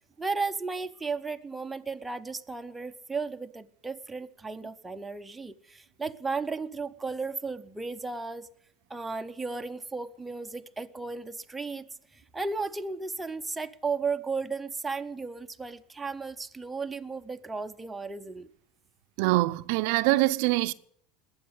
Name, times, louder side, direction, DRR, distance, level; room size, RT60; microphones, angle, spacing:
voice 1, 0.2-8.5 8.9-11.9 12.1-18.5, right 4 dB, 10° right, 0.7 m, -34 dB
voice 2, 19.2-20.7, right 19 dB, 65° right, 0.6 m, -24 dB
20.5 x 8.7 x 8.1 m
supercardioid pair, 150°, 0 cm